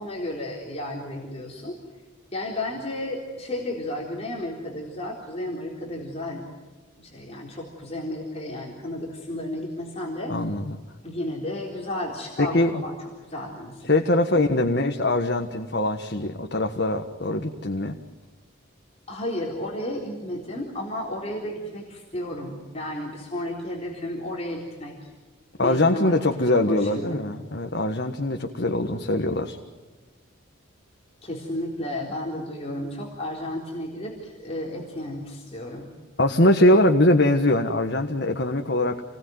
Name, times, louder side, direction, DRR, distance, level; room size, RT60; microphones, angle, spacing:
voice 1, 0.0-1.8 2.3-6.5 7.0-10.3 11.0-13.0 13.2-14.0 14.3-14.6 19.1-25.0 25.6-27.3 31.2-35.9, left 1 dB, 30° left, -2 dB, 3.9 m, -33 dB
voice 2, 10.3-10.8 12.4-12.8 13.9-18.0 25.6-29.6 36.2-39.0, left 1 dB, 55° left, 4 dB, 1.5 m, -22 dB
29.0 x 20.5 x 9.5 m, 1.3 s
head